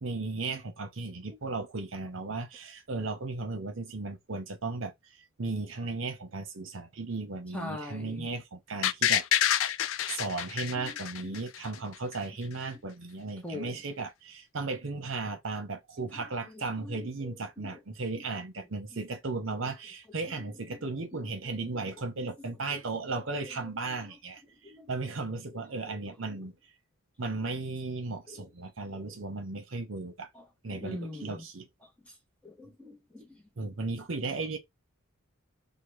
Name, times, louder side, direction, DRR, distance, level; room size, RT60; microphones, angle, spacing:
voice 1, 0.0-4.9 5.4-9.2 10.1-24.4 24.9-26.5 27.2-30.3 30.6-31.7 33.6-34.6, right 3 dB, 60° right, 0.8 m, -35 dB
voice 2, 7.5-8.3 10.8-10.9 11.2-11.4 13.4-13.8 16.2-16.3 16.8-17.3 17.6-17.7 22.2-22.3 24.6-24.9 26.3-26.4 28.9-29.0 30.7-31.3 32.4-33.7, left 2 dB, 5° left, 0.6 m, -42 dB
sound 1, 8.8-11.8 12.1-12.2, left 11 dB, 65° left, 0.3 m, -27 dB
2.8 x 2.1 x 3.1 m
head